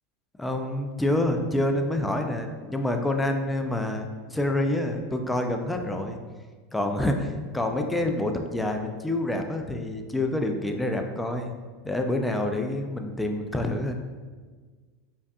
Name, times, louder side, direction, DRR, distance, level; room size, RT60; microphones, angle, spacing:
voice 1, 0.4-6.2 6.7-11.5 11.8-13.9, left 1 dB, 5° left, 4 dB, 0.4 m, -27 dB
5.1 x 2.4 x 2.3 m, 1.5 s
supercardioid pair, 120°, 0 cm